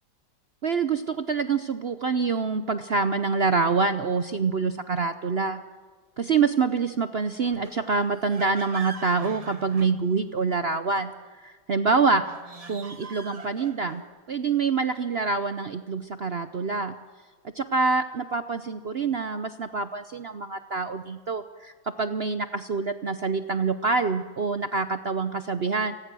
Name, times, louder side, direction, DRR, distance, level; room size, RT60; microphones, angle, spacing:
voice 1, 0.6-5.6 6.2-12.3 12.7-14.0 14.3-16.9 17.5-21.7 22.0-26.0, right 4 dB, 60° right, 10 dB, 0.6 m, -26 dB
sound 1, 7.4-10.5 12.1-14.1, right 4 dB, 20° right, 1.2 m, -43 dB
29.0 x 19.5 x 6.2 m, 1.5 s
omnidirectional pair, 2.0 m